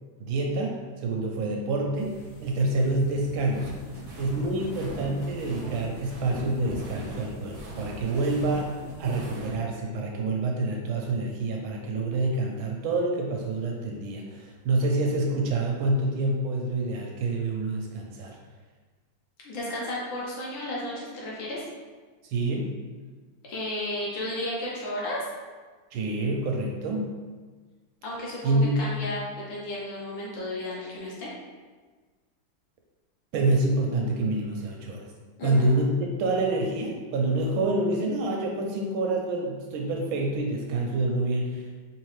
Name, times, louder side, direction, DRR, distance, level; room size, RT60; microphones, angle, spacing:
voice 1, 0.2-3.7 4.2-18.4 22.2-22.7 25.9-27.2 28.4-28.8 33.3-35.1 35.4-41.8, right 2 dB, 75° right, 0 dB, 1.3 m, -27 dB
sound 1, 1.9-9.4, equal, 90° left, 1.6 m, -48 dB
sound 2, 3.5-9.6, right 1 dB, 50° right, 0.8 m, -40 dB
voice 2, 19.4-21.6 23.4-25.2 28.0-31.3 35.4-35.7, left 1 dB, 65° left, -5 dB, 1.6 m, -33 dB
4.5 x 3.0 x 3.1 m, 1.4 s
omnidirectional pair, 2.4 m